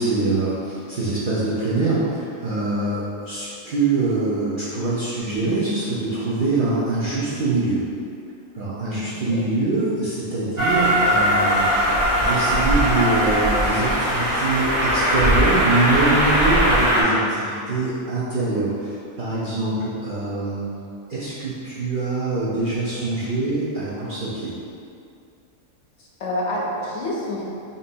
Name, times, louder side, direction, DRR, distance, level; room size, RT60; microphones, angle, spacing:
voice 1, 0.0-7.8 8.5-11.7 12.2-20.6 21.1-24.5, right 3 dB, 55° right, -9 dB, 0.6 m, -24 dB
Train, 10.6-17.0, equal, 15° right, 1.0 m, -19 dB
voice 2, 26.0-27.4, left 1 dB, 65° left, -4 dB, 0.8 m, -27 dB
5.3 x 2.7 x 2.6 m, 2.5 s
omnidirectional pair, 1.5 m